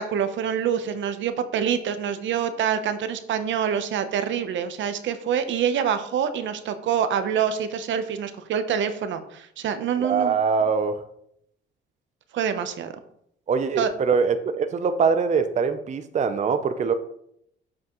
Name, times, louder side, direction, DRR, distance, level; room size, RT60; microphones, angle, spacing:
voice 1, 0.0-10.4 12.3-12.9 13.8-13.9, right 8 dB, 70° right, 10 dB, 0.8 m, -26 dB
voice 2, 10.0-11.0 13.5-16.9, right 5 dB, 35° right, 9 dB, 0.5 m, -23 dB
7.5 x 5.9 x 3.0 m, 0.71 s
cardioid pair, 90°, 20 cm